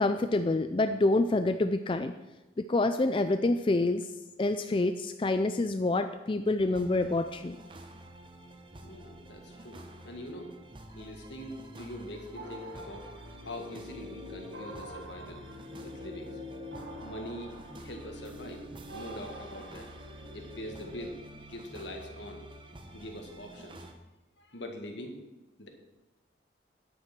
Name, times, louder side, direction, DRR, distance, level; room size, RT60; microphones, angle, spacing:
voice 1, 0.0-2.1 2.6-4.1 4.4-7.6, left 2 dB, 25° left, 9 dB, 0.3 m, -27 dB
sound 1, 6.6-23.9, right 1 dB, 25° right, 0.9 m, -49 dB
voice 2, 8.8-10.5 10.9-13.1 13.4-15.4 15.8-16.3 17.0-18.6 18.9-19.9 20.3-21.2 21.5-22.4 22.9-23.9 24.4-25.2 25.6-25.7, left 1 dB, 75° left, 4 dB, 1.8 m, -43 dB
sound 2, 12.3-21.1, left 1 dB, 85° right, 3.5 m, -45 dB
9.8 x 8.5 x 6.0 m, 1.1 s
head